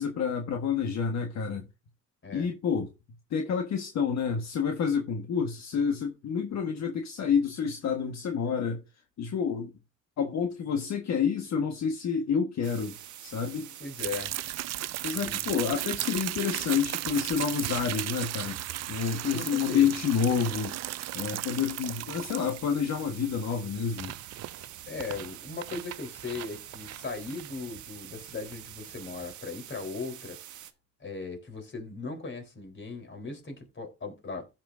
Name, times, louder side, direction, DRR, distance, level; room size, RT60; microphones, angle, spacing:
voice 1, 0.0-1.7 2.3-2.9 3.3-8.8 9.2-9.7 10.2-12.9 13.2-13.7 15.0-18.6 18.9-20.8 21.1-24.1, left 6 dB, 65° left, 1.4 m, -29 dB
sound 1, 12.6-30.7, right 11 dB, 75° right, 1.3 m, -46 dB
voice 2, 13.8-14.3 15.1-15.6 19.3-20.0 24.9-30.4 31.0-34.5, left 4 dB, 40° left, 3.8 m, -38 dB
sound 2, 14.0-29.3, right 14 dB, 60° right, 0.5 m, -36 dB
15.0 x 6.0 x 2.6 m
cardioid pair, 90°, 30 cm